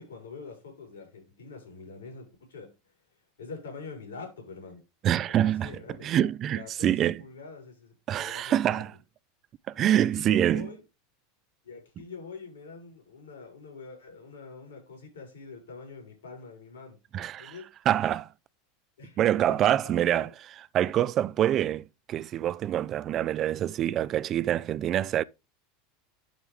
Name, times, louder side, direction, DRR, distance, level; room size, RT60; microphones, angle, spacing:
voice 1, 0.0-2.9 3.4-4.8 5.3-6.3 6.5-8.8 9.9-10.8 11.6-17.0 17.4-17.7 19.0-20.3, left 4 dB, 80° left, 5.6 m, -45 dB
voice 2, 5.0-7.2 8.1-8.9 9.7-10.7 17.1-17.5 17.9-18.3 19.2-25.2, right 11 dB, 40° right, 0.5 m, -26 dB
11.5 x 4.7 x 3.5 m
hypercardioid pair, 85°, 0 cm